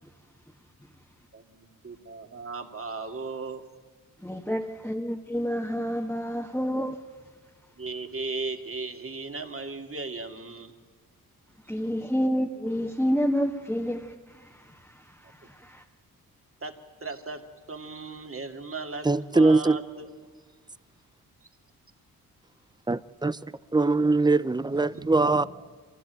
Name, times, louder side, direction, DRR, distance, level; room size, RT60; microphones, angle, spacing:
voice 1, 1.3-3.6 7.8-10.7 16.6-17.4 17.7-19.1 19.3-20.1 24.9-25.4, right 3 dB, 35° right, 2.4 m, -36 dB
voice 2, 4.2-7.0 11.7-15.8, equal, 5° left, 1.7 m, -29 dB
voice 3, 19.0-19.8 22.9-23.4 23.7-25.5, right 3 dB, 10° right, 0.6 m, -22 dB
24.0 x 16.0 x 9.3 m
cardioid pair, 55°, 37 cm